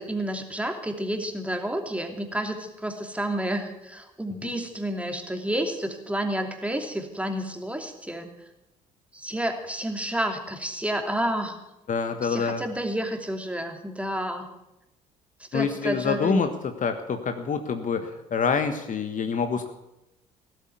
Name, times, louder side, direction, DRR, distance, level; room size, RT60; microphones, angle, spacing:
voice 1, 0.0-8.3 9.1-11.6 12.2-14.5 15.5-16.4, right 1 dB, 5° right, 5 dB, 2.8 m, -30 dB
voice 2, 11.9-12.6 15.5-19.7, left 5 dB, 40° left, 7 dB, 1.4 m, -26 dB
17.0 x 8.0 x 9.4 m, 0.94 s
figure-of-eight pair, 50°, 21 cm